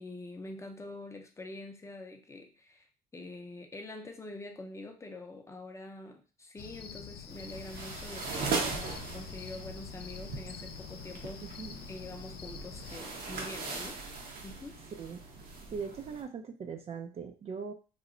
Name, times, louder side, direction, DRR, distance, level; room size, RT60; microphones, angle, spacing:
voice 1, 0.0-2.9 3.1-11.6 11.9-14.0 14.4-14.8, left 2 dB, 15° left, 4 dB, 0.5 m, -45 dB
Cricket, 6.6-13.0, left 7 dB, 75° left, 0.5 m, -46 dB
sound 1, 7.3-16.2, right 4 dB, 65° right, 0.9 m, -39 dB
voice 2, 11.4-11.8 15.0-15.2 15.7-17.7, right 6 dB, 35° right, 6 dB, 0.4 m, -40 dB
3.0 x 2.1 x 3.7 m, 0.35 s
cardioid pair, 110°, 17 cm